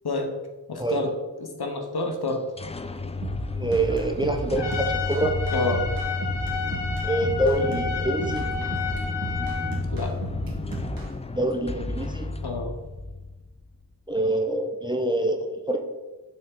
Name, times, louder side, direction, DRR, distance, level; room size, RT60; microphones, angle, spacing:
voice 1, 0.7-1.1 1.4-2.4 5.5-5.8 9.9-10.1 12.4-12.7, left 2 dB, 65° left, 3 dB, 1.0 m, -28 dB
sound 1, 2.3-13.9, left 3 dB, 15° left, 0.3 m, -33 dB
sound 2, 3.2-11.1, right 2 dB, 55° right, 1.1 m, -33 dB
voice 2, 3.5-5.3 7.0-8.5 11.3-12.3 14.1-15.8, right 1 dB, 10° right, 4 dB, 0.7 m, -25 dB
Trumpet, 4.6-9.8, left 5 dB, 85° left, 1.3 m, -31 dB
6.4 x 3.6 x 4.5 m, 1.1 s
wide cardioid pair, 50°, 41 cm